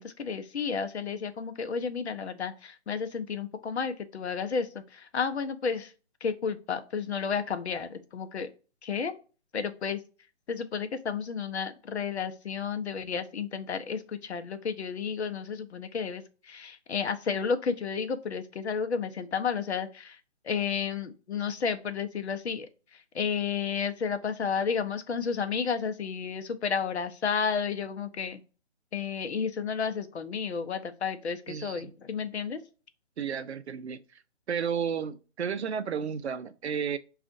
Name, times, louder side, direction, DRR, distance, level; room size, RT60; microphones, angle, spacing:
voice 1, 0.0-5.9 6.2-8.5 8.8-9.1 9.5-10.0 10.5-20.2 20.4-28.4 28.9-32.6, left 6 dB, 70° left, 0.6 m, -32 dB
voice 2, 31.5-31.9 33.2-34.0 34.5-37.0, right 7 dB, 65° right, 0.5 m, -32 dB
6.2 x 2.4 x 2.6 m
hypercardioid pair, 170°, 35 cm